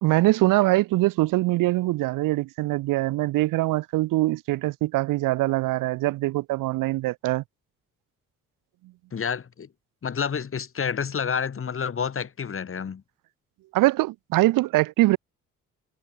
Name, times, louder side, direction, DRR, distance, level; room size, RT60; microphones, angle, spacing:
voice 1, 0.0-7.4 13.7-15.2, right 19 dB, 90° right, 1.1 m, -23 dB
voice 2, 9.1-9.7 10.0-13.0, left 6 dB, 45° left, 1.8 m, -29 dB
cardioid pair, 70°, 32 cm